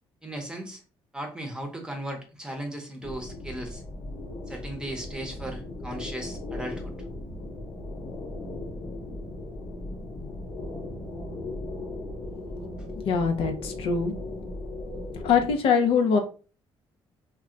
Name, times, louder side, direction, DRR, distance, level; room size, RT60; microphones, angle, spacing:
voice 1, 0.2-0.8 1.1-3.8 4.5-6.9, right 1 dB, 10° right, 2 dB, 0.8 m, -36 dB
sound 1, 3.0-15.5, left 2 dB, 55° left, 0.9 m, -37 dB
voice 2, 13.0-14.1 15.1-16.2, left 6 dB, 75° left, 5 dB, 0.5 m, -23 dB
2.3 x 2.1 x 3.8 m, 0.36 s
cardioid pair, 120°, 10 cm